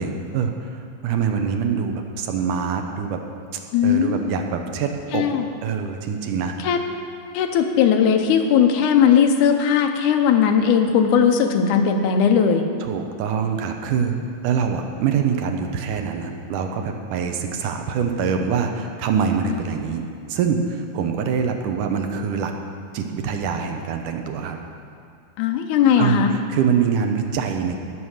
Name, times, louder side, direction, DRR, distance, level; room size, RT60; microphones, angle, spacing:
voice 1, 0.0-3.2 3.8-5.3 5.6-6.5 12.8-20.0 20.3-22.5 22.9-24.6 26.0-26.2 26.5-27.8, right 6 dB, 75° right, 4 dB, 2.3 m, -24 dB
voice 2, 3.7-4.3 5.1-5.5 6.6-6.8 7.3-12.6 19.4-19.6 25.4-26.3, left 7 dB, 75° left, 5 dB, 2.2 m, -18 dB
17.0 x 6.3 x 6.5 m, 2.4 s
omnidirectional pair, 3.9 m